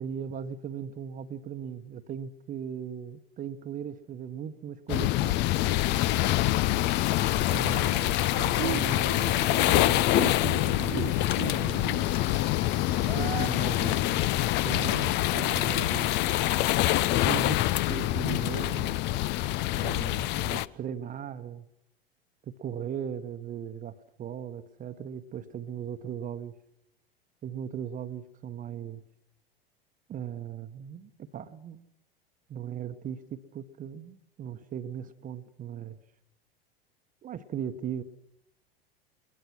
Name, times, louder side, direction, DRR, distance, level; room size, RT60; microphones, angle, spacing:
voice 1, 0.0-5.3 7.5-12.2 13.1-16.1 17.2-19.0 19.8-21.7 22.5-26.5 27.4-29.0 30.1-31.8 32.5-36.0 37.2-38.0, right 8 dB, 25° right, 10 dB, 1.2 m, -38 dB
sound 1, 4.9-20.7, left 15 dB, 35° left, 0.7 m, -26 dB
sound 2, 7.2-13.5, right 9 dB, 75° right, 1.0 m, -40 dB
sound 3, 11.2-19.1, left 9 dB, 55° left, 1.8 m, -44 dB
22.0 x 21.0 x 6.2 m, 0.85 s
figure-of-eight pair, 85°, 30 cm